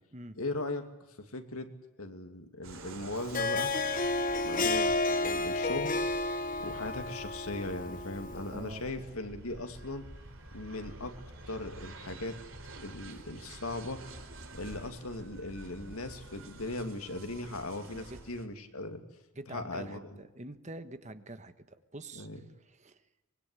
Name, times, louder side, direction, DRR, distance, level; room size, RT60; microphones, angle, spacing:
voice 1, 0.3-0.9 1.2-1.7 2.0-3.7 4.4-6.0 6.6-10.0 10.5-11.1 11.5-12.3 12.7-14.0 14.5-19.0 19.5-20.0 22.1-22.4, left 2 dB, 80° left, 6 dB, 2.7 m, -38 dB
sound 1, 2.6-18.4, right 2 dB, 60° right, 3.5 m, -49 dB
Harp, 3.2-8.6, left 2 dB, 35° left, 1.3 m, -31 dB
voice 2, 8.5-9.1 18.1-18.2 19.3-22.3 22.7-23.0, right 2 dB, 30° right, 10 dB, 1.4 m, -46 dB
24.5 x 22.0 x 9.9 m, 1.0 s
head